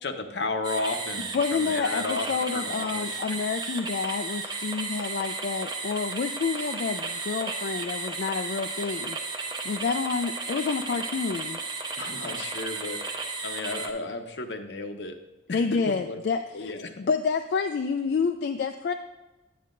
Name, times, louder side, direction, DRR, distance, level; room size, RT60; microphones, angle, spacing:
voice 1, 0.0-3.2 12.0-13.0 13.4-15.2 15.5-16.2 16.5-16.9, left 3 dB, 80° left, 6 dB, 0.8 m, -33 dB
sound 1, 0.6-13.9, right 3 dB, 25° right, 0.6 m, -34 dB
voice 2, 1.3-9.2 9.6-11.6 15.5-16.7 17.0-18.9, left 5 dB, 65° left, 6 dB, 0.3 m, -28 dB
9.3 x 9.1 x 2.5 m, 1.1 s
head